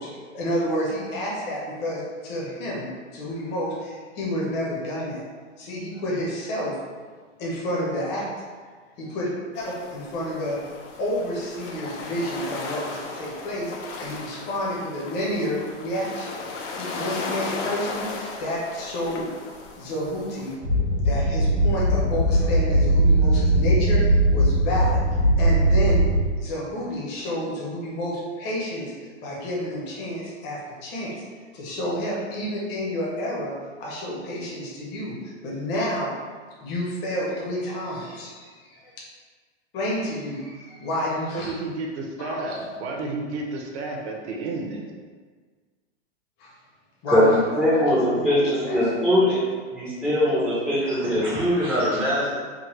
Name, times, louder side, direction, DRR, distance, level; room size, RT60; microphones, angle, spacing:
voice 1, 0.0-5.3 5.6-6.7 7.4-8.3 9.1-9.3 9.5-9.6 9.9-10.7 11.0-16.3 16.7-19.3 19.8-20.5 21.0-25.0 25.4-26.0 26.4-28.9 29.2-31.1 31.5-33.5 33.8-36.1 36.6-38.8 39.7-41.5 42.2-42.7 46.4-46.5 47.0-47.6 47.9-48.2 48.6-48.9 50.0-50.2, equal, 30° left, -5 dB, 0.8 m, -30 dB
sound 1, 9.5-20.6, left 3 dB, 75° left, 0.7 m, -36 dB
sound 2, 20.6-26.2, right 1 dB, 90° right, 1.0 m, -20 dB
voice 2, 41.4-44.9, right 3 dB, 60° right, 1 dB, 0.8 m, -31 dB
voice 3, 47.1-49.4 49.7-52.4, equal, 5° left, -10 dB, 0.5 m, -21 dB
3.6 x 2.1 x 3.0 m, 1.5 s
hypercardioid pair, 135°, 37 cm